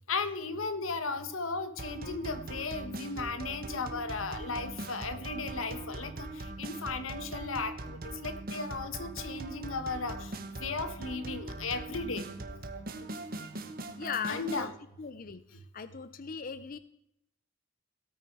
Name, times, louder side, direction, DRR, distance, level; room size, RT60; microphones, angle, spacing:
voice 1, 0.1-6.3 6.6-10.3 10.6-12.2 14.3-14.7, left 4 dB, 90° left, 11 dB, 1.3 m, -35 dB
sound 1, 1.8-14.7, right 2 dB, 45° right, 1.2 m, -41 dB
voice 2, 14.0-14.7 15.0-15.4 15.7-16.8, left 6 dB, 45° left, 14 dB, 0.5 m, -38 dB
17.0 x 9.0 x 4.7 m, 0.81 s
head